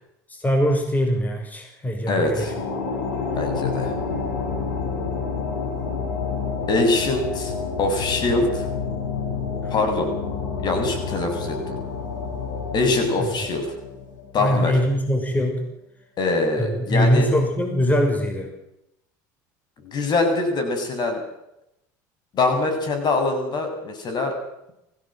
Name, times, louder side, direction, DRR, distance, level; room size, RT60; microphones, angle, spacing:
voice 1, 0.3-2.5 9.6-9.7 13.2-13.5 14.4-15.7 16.6-18.5, equal, 15° left, 4 dB, 6.0 m, -22 dB
sound 1, 2.1-14.7, left 5 dB, 85° left, 6.3 m, -29 dB
voice 2, 2.1-2.5 3.3-3.9 6.7-7.5 7.8-8.6 9.7-10.1 10.6-11.8 12.7-13.7 14.3-14.7 16.2-17.3 19.8-21.2 22.3-24.4, left 3 dB, 45° left, 6 dB, 7.6 m, -23 dB
24.5 x 16.5 x 7.8 m, 0.83 s
hypercardioid pair, 80°, 10 cm